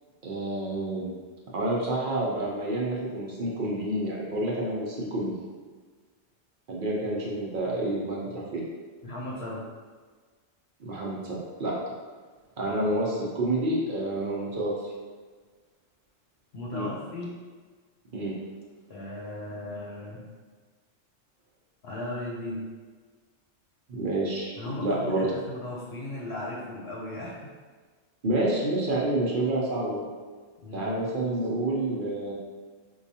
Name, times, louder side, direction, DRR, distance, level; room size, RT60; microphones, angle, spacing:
voice 1, 0.2-1.1 1.5-5.3 6.7-8.6 10.8-11.7 12.6-14.8 16.7-16.9 18.1-18.3 23.9-25.3 28.2-30.0 30.7-32.3, right 1 dB, 50° right, -4 dB, 0.8 m, -28 dB
voice 2, 9.0-9.6 16.5-17.3 18.9-20.3 21.8-22.7 24.6-27.5 30.6-31.0, left 1 dB, 65° left, -5 dB, 0.9 m, -36 dB
4.5 x 2.3 x 2.7 m, 1.5 s
omnidirectional pair, 1.2 m